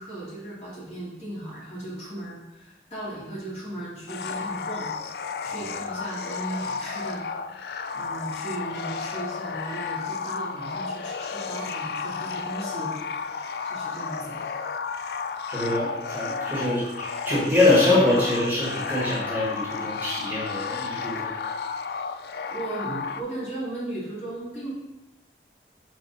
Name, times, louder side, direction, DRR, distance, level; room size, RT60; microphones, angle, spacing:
voice 1, 0.0-4.9 5.4-7.2 7.9-12.9 13.6-14.4 22.5-24.7, right 1 dB, 35° left, -8 dB, 2.1 m, -36 dB
sound 1, 4.1-23.2, left 5 dB, 65° left, 0.3 m, -33 dB
voice 2, 15.5-21.3, left 2 dB, 10° right, -8 dB, 1.7 m, -24 dB
4.2 x 4.2 x 5.6 m, 0.99 s
head